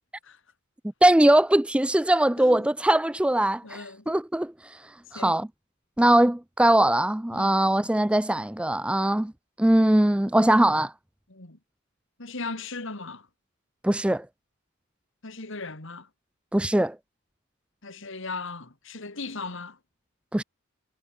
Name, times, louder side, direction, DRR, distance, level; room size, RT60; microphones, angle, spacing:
voice 1, 1.0-4.8 5.1-5.5 6.0-9.3 9.6-10.9 13.8-14.3 16.5-17.0 20.3-20.4, right 1 dB, 5° right, 0.4 m, -21 dB
voice 2, 3.6-4.2 5.1-5.4 7.3-7.6 11.3-11.6 12.2-13.3 15.2-16.1 17.8-19.8, left 3 dB, 60° left, 2.9 m, -37 dB
head